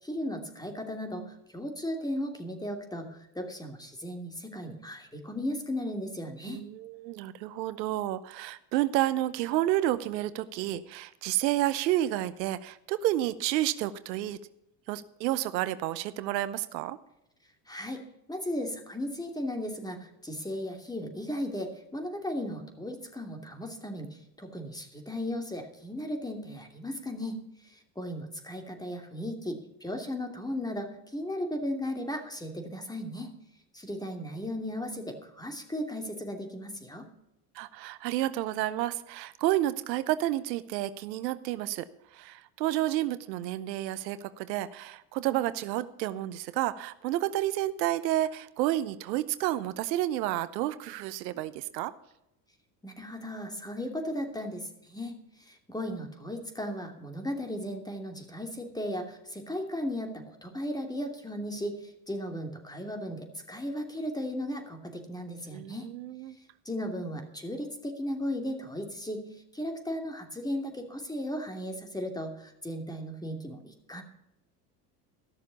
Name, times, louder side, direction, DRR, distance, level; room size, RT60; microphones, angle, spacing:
voice 1, 0.0-6.6 17.7-18.0 18.3-33.3 33.7-37.1 52.8-65.9 66.6-69.3 69.5-74.0, equal, 10° left, 4 dB, 2.9 m, -36 dB
voice 2, 6.5-14.4 14.9-17.0 37.5-41.8 42.1-51.9 65.5-66.4, right 14 dB, 85° right, 14 dB, 0.8 m, -30 dB
14.0 x 6.7 x 7.0 m, 0.85 s
hypercardioid pair, 85°, 49 cm